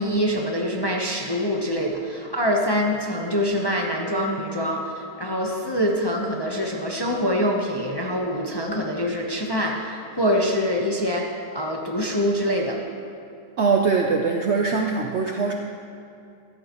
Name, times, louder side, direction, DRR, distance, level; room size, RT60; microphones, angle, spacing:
voice 1, 0.0-12.8, equal, 20° left, -1 dB, 0.7 m, -25 dB
voice 2, 13.6-15.5, right 4 dB, 60° right, 1 dB, 0.7 m, -22 dB
14.5 x 12.5 x 3.0 m, 2.5 s
omnidirectional pair, 1.8 m